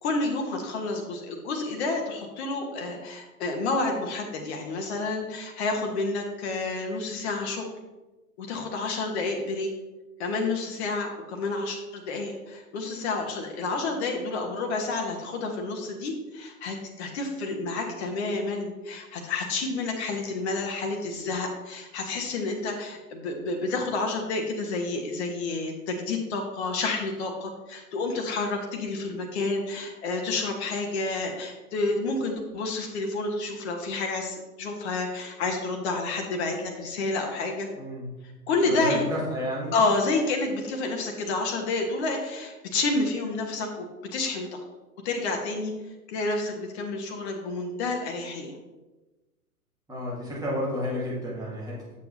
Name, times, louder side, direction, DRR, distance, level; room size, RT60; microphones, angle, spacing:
voice 1, 0.0-7.7 8.4-9.7 10.2-37.7 38.5-39.0 39.7-44.6 45.0-45.7 46.1-48.5, left 3 dB, 45° left, 2 dB, 1.2 m, -29 dB
voice 2, 37.8-38.2 38.7-39.8 49.9-52.0, equal, 10° right, -6 dB, 2.3 m, -31 dB
8.0 x 6.8 x 2.7 m, 1.1 s
figure-of-eight pair, 110°, 46 cm